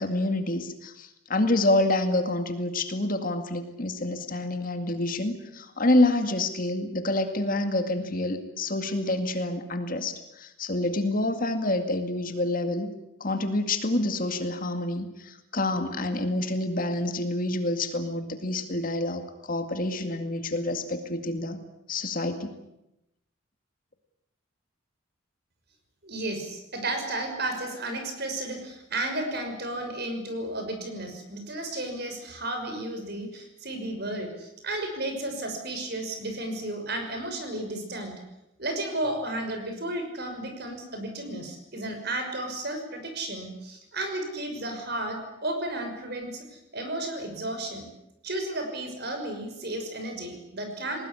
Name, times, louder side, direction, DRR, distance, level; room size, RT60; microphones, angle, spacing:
voice 1, 0.0-12.9 13.2-21.6 21.9-22.5, left 2 dB, 40° left, 7 dB, 2.2 m, -27 dB
voice 2, 26.0-38.1 38.6-47.8 48.2-51.1, right 1 dB, 50° right, 5 dB, 5.9 m, -33 dB
20.5 x 20.0 x 10.0 m, 0.88 s
head